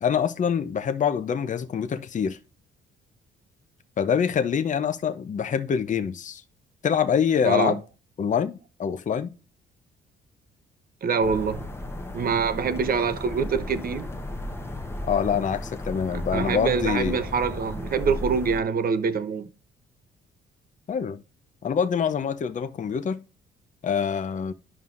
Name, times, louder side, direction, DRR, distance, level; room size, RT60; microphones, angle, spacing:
voice 1, 0.0-2.4 4.0-6.4 6.8-7.8 8.2-9.3 15.0-17.2 20.9-21.2 21.6-23.2 23.8-24.5, left 7 dB, 40° left, 0.7 m, -25 dB
voice 2, 7.4-7.8 11.0-11.7 12.1-14.1 16.1-19.5, right 5 dB, 45° right, 0.8 m, -25 dB
car-by series bformat whoosy, 11.2-18.6, left 1 dB, 10° left, 1.0 m, -35 dB
11.0 x 5.5 x 2.5 m
cardioid pair, 90°, 20 cm